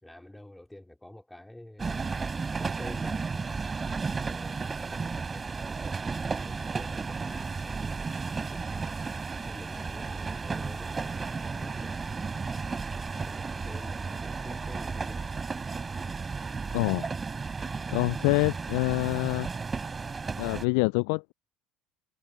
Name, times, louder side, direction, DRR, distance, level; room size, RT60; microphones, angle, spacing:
voice 1, 0.0-2.3 2.6-3.3 3.6-5.9 6.4-9.0 9.4-12.2 12.5-15.3, left 1 dB, 5° left, 4.1 m, -48 dB
sound 1, 1.8-20.7, right 4 dB, 25° right, 4.3 m, -33 dB
voice 2, 16.7-17.1 17.9-19.5 20.4-21.3, left 33 dB, 70° left, 0.4 m, -26 dB
hypercardioid pair, 65°, 0 cm